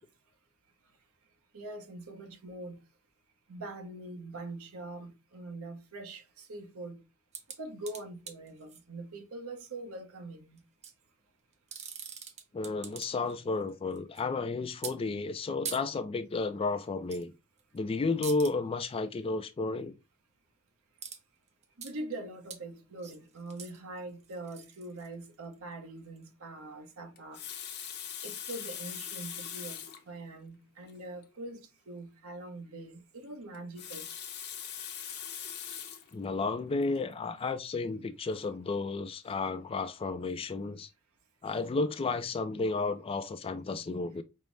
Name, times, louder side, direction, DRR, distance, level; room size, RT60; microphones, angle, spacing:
voice 1, 1.5-2.8 3.5-7.0 7.6-10.6 21.8-27.4 28.2-34.1, right 2 dB, 70° right, 0.8 m, -43 dB
sound 1, 7.3-8.8 10.6-10.9 11.5-13.3 13.6-14.2 14.8-15.0 15.6-15.8 17.1-17.3 17.6-17.8 18.2-18.5 21.0-21.2 21.5-21.9 22.5-22.6 23.0-25.5 26.2-26.3, right 7 dB, 30° right, 0.6 m, -43 dB
voice 2, 12.5-17.3 17.7-20.0 36.1-40.9 41.4-44.2, left 3 dB, 25° left, 0.3 m, -32 dB
Water tap faucet, 27.2-30.1 30.9-31.0 31.2-31.3 33.5-36.1 36.8-37.0, left 9 dB, 50° left, 0.7 m, -41 dB
5.4 x 2.0 x 3.2 m
head